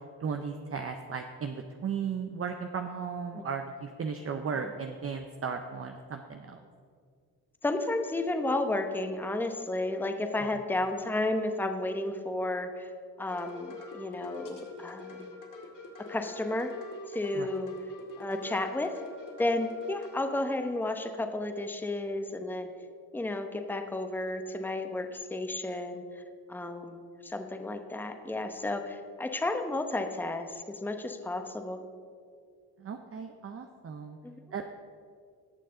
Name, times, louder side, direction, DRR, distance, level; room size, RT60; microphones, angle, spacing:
voice 1, 0.2-6.6 17.4-17.5 32.8-34.2 34.5-34.6, right 6 dB, 35° right, 5 dB, 0.7 m, -36 dB
voice 2, 7.6-12.9 13.2-15.4 16.1-16.8 17.1-17.7 18.2-19.0 19.4-22.7 23.1-26.0 26.5-31.8 34.2-34.3, left 2 dB, 5° left, 6 dB, 0.8 m, -32 dB
sound 1, 13.3-20.2, left 2 dB, 55° left, 2.1 m, -45 dB
18.0 x 6.5 x 3.8 m, 2.2 s
cardioid pair, 70°, 38 cm